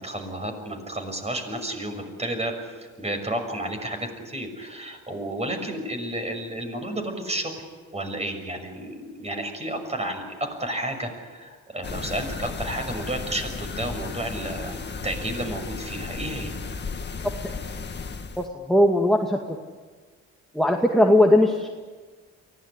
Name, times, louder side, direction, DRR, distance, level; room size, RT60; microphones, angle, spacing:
voice 1, 0.0-2.5 3.0-7.5 7.9-10.2 10.6-16.6, right 1 dB, 20° right, 5 dB, 6.4 m, -31 dB
sound 1, 11.8-18.5, left 4 dB, 35° left, 1.9 m, -34 dB
voice 2, 18.4-19.6 20.5-21.7, left 1 dB, ahead, 1 dB, 2.1 m, -19 dB
24.0 x 17.5 x 9.9 m, 1.4 s
cardioid pair, 90°, 30 cm